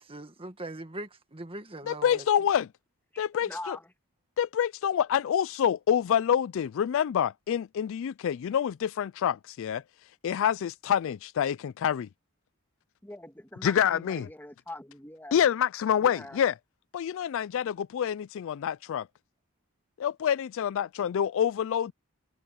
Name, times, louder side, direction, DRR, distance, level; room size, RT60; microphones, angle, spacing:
voice 1, 0.0-2.3, right 2 dB, 25° right, 1.7 m, -41 dB
voice 2, 1.9-2.7 3.2-3.8 4.4-9.8 10.2-12.1 13.6-14.3 15.3-16.5 16.9-19.1 20.0-21.9, left 9 dB, 60° left, 0.3 m, -27 dB
voice 3, 3.1-3.9 13.0-15.4 16.0-16.4, left 1 dB, 10° left, 1.6 m, -43 dB
head